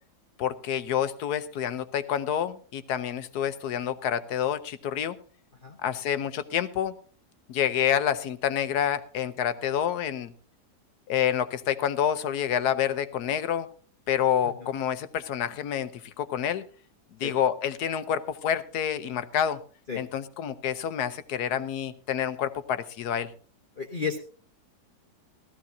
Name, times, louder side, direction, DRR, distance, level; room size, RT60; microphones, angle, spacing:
voice 1, 0.4-5.2 5.8-6.9 7.5-10.3 11.1-13.7 14.1-16.6 17.2-19.6 20.0-23.3, left 9 dB, 75° left, 12 dB, 1.3 m, -28 dB
voice 2, 23.8-24.2, left 6 dB, 35° left, 1 dB, 1.0 m, -31 dB
16.5 x 14.0 x 2.7 m, 0.41 s
omnidirectional pair, 1.8 m